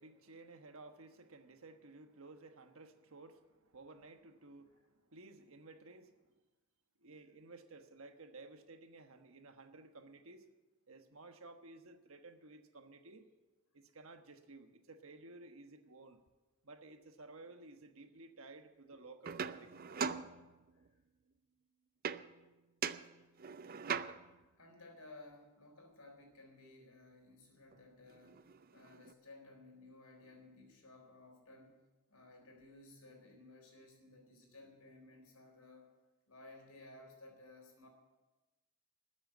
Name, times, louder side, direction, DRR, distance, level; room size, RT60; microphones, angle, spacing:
voice 1, 0.0-6.4 7.0-10.5 10.9-13.3 13.7-16.2 16.6-19.7, right 3 dB, 65° right, 1.3 m, -55 dB
sound 1, 19.2-20.9 22.0-22.5 22.8-24.5 27.7-27.8 28.1-29.1, right 6 dB, 40° right, 0.5 m, -41 dB
voice 2, 24.3-31.8 32.1-35.9 36.3-37.9, left 2 dB, 85° left, 4.1 m, -58 dB
13.5 x 8.0 x 9.4 m
head